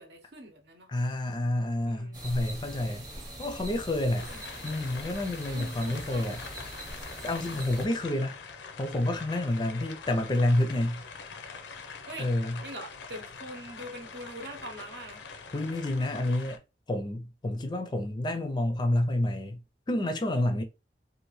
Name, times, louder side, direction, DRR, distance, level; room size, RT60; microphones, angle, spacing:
voice 1, 0.0-0.9 1.9-2.2 4.3-4.5 5.5-6.3 12.1-12.3 12.6-15.2, right 1 dB, 70° right, 0.8 m, -43 dB
voice 2, 0.9-3.1 3.4-4.3 4.6-6.4 7.2-8.4 8.8-11.0 12.2-12.6 15.5-16.6 16.9-19.6 19.9-20.6, left 1 dB, 25° left, 0.4 m, -29 dB
sound 1, 2.1-7.9, right 1 dB, 25° right, 0.7 m, -42 dB
sound 2, 4.2-16.6, left 5 dB, 90° left, 0.5 m, -44 dB
2.7 x 2.5 x 3.1 m
head